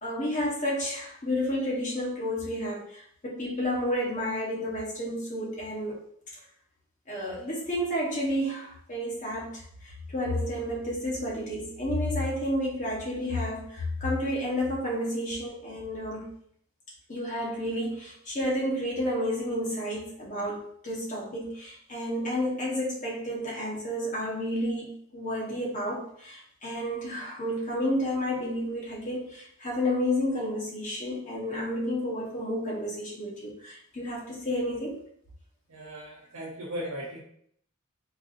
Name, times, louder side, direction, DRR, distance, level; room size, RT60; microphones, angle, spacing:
voice 1, 0.0-6.0 7.1-16.3 17.1-35.0, left 1 dB, 35° left, -5 dB, 1.1 m, -31 dB
voice 2, 35.7-37.2, equal, 85° right, -4 dB, 0.7 m, -37 dB
4.6 x 2.6 x 2.6 m, 0.65 s
head